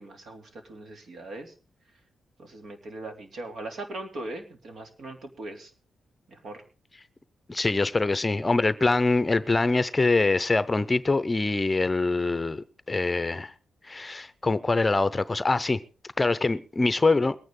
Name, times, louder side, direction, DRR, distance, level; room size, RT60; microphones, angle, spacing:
voice 1, 0.0-1.5 2.4-5.7 6.3-6.6, right 2 dB, 60° right, 2.9 m, -40 dB
voice 2, 7.5-13.5 13.9-15.8 16.2-17.4, left 3 dB, 25° left, 0.7 m, -24 dB
22.0 x 9.4 x 3.8 m
cardioid pair, 90°, 0 cm